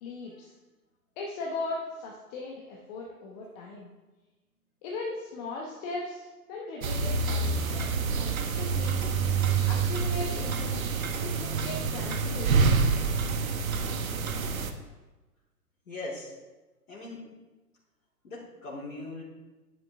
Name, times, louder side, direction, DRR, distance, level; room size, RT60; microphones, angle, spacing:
voice 1, 0.0-0.5 1.2-3.9 4.8-9.0 9.6-10.8 11.2-12.7, left 2 dB, 25° left, -2 dB, 1.3 m, -38 dB
sound 1, 6.8-14.7, right 5 dB, 60° right, 1.2 m, -27 dB
voice 2, 7.6-8.1 8.5-8.6 15.8-16.3 16.9-17.3 18.2-19.2, left 2 dB, 60° left, -7 dB, 3.1 m, -41 dB
11.5 x 9.1 x 3.6 m, 1.2 s
figure-of-eight pair, 125°, 48 cm